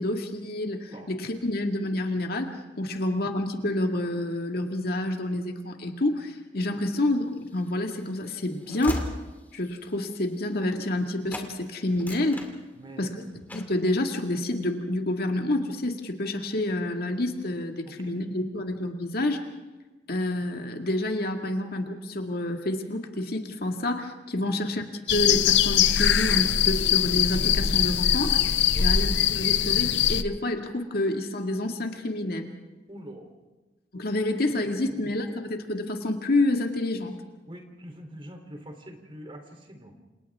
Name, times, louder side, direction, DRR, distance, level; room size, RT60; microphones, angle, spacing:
voice 1, 0.0-9.1 9.5-12.5 13.0-13.1 13.5-19.4 20.1-28.4 28.8-32.5 33.9-37.2, left 1 dB, 60° left, 4 dB, 2.1 m, -28 dB
Train / Slam, 7.4-11.0 11.3-11.5 11.9-13.1 13.5-13.8, left 1 dB, 10° left, 2.5 m, -38 dB
voice 2, 12.8-13.2 18.1-18.2 24.4-24.6 28.7-28.9 32.9-33.3 34.8-35.0 37.5-39.9, equal, 30° right, 4 dB, 3.4 m, -44 dB
sound 1, 25.1-30.2, left 9 dB, 80° left, 0.8 m, -22 dB
28.0 x 28.0 x 3.7 m, 1.2 s
head